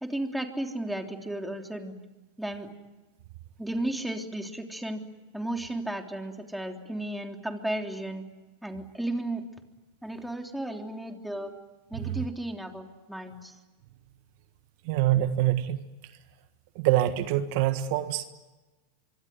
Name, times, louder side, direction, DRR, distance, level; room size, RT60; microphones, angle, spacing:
voice 1, 0.0-1.9 2.4-2.7 3.6-5.0 5.3-8.2 8.6-9.4 10.0-11.5 11.9-13.5, right 1 dB, 5° right, 4 dB, 3.3 m, -34 dB
voice 2, 14.8-15.8 16.7-18.3, right 13 dB, 60° right, 10 dB, 1.5 m, -25 dB
25.0 x 24.5 x 9.5 m, 1.2 s
hypercardioid pair, 105°, 0 cm